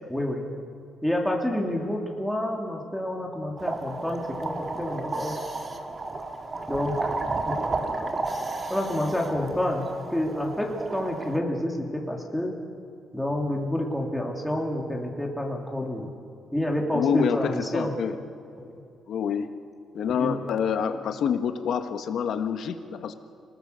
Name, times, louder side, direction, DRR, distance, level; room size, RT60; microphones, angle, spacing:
voice 1, 0.1-0.4 1.0-5.4 6.7-7.1 7.4-7.5 8.2-8.3 8.7-9.8 10.1-12.5 13.1-16.1 16.5-17.9 18.6-18.7 20.2-20.4, left 1 dB, ahead, -1 dB, 3.0 m, -28 dB
sound 1, 3.6-11.4, right 3 dB, 35° right, 1.9 m, -32 dB
voice 2, 16.9-18.2 19.1-19.5 19.9-23.1, left 7 dB, 70° left, 8 dB, 1.4 m, -27 dB
26.0 x 19.5 x 6.9 m, 2.5 s
cardioid pair, 90°, 0 cm